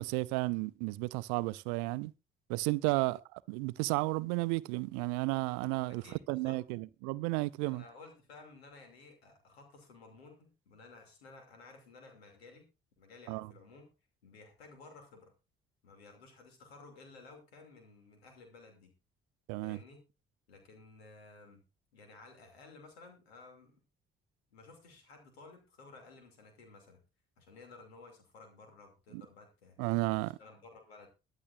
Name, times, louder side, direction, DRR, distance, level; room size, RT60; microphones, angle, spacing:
voice 1, 0.0-2.1 2.5-3.2 3.5-7.8 13.3-13.5 19.5-19.8 29.1-29.2 29.8-30.4, right 23 dB, 65° right, 0.6 m, -33 dB
voice 2, 5.9-6.6 7.6-12.7 13.0-13.9 14.2-15.3 15.8-18.9 19.6-20.1 20.5-21.6 21.9-23.8 24.5-27.0 27.4-29.8 30.4-31.1, left 3 dB, 80° left, 2.8 m, -55 dB
22.0 x 7.3 x 2.6 m
figure-of-eight pair, 45°, 31 cm